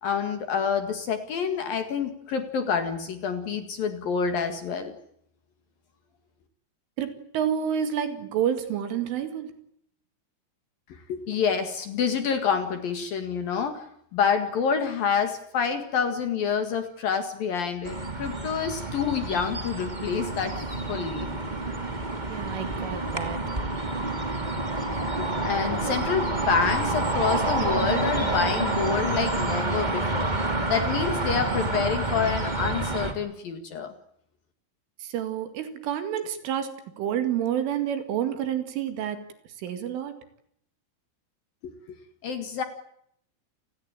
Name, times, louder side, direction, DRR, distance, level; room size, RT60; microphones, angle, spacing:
voice 1, 0.0-4.9 10.9-13.9 14.1-20.6 20.9-21.3 25.2-30.3 30.7-33.9 41.6-42.0 42.2-42.6, left 6 dB, 55° left, 8 dB, 2.9 m, -28 dB
voice 2, 7.0-9.6 22.3-23.5 35.0-36.7 37.0-39.2 39.6-40.2, right 9 dB, 70° right, 9 dB, 4.6 m, -29 dB
sound 1, 17.8-33.1, right 2 dB, 45° right, 0.5 m, -28 dB
29.5 x 19.0 x 9.0 m, 0.70 s
omnidirectional pair, 6.0 m